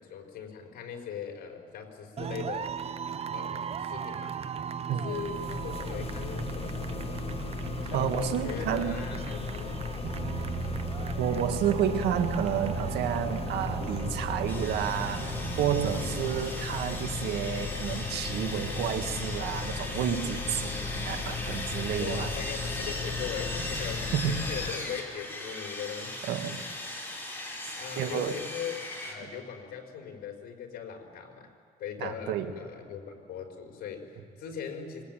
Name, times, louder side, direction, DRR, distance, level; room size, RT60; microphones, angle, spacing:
voice 1, 0.0-2.7 3.3-4.4 5.0-7.2 7.8-9.8 15.9-16.4 20.5-20.8 22.0-26.4 27.3-31.5 31.8-35.0, left 7 dB, 65° left, 2 dB, 4.9 m, -40 dB
sound 1, 2.2-16.5, right 7 dB, 35° right, 0.8 m, -37 dB
sound 2, 5.1-24.7, left 4 dB, 35° left, 1.5 m, -36 dB
voice 2, 7.9-9.0 11.2-22.3 24.1-24.4 26.3-26.6 28.0-28.4 32.0-32.5, right 9 dB, 80° right, 7 dB, 2.1 m, -30 dB
Sawing, 14.5-29.1, left 1 dB, 10° left, 6.2 m, -38 dB
25.0 x 22.0 x 9.3 m, 2.1 s
cardioid pair, 110°, 17 cm